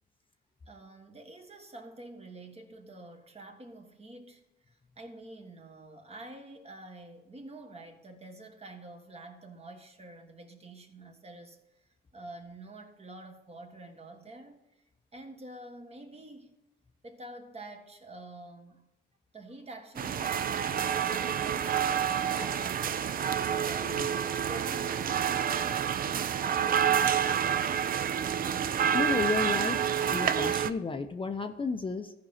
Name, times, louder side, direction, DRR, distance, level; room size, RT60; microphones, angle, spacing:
voice 1, 0.7-14.8 15.1-16.5 17.0-18.8 19.3-23.1 23.5-28.4, right 2 dB, 30° right, 1.5 m, -48 dB
sound 1, 20.0-30.7, right 8 dB, 45° right, 0.5 m, -28 dB
voice 2, 28.9-32.1, left 4 dB, 25° left, 0.6 m, -32 dB
13.5 x 5.2 x 4.3 m
cardioid pair, 90°, 20 cm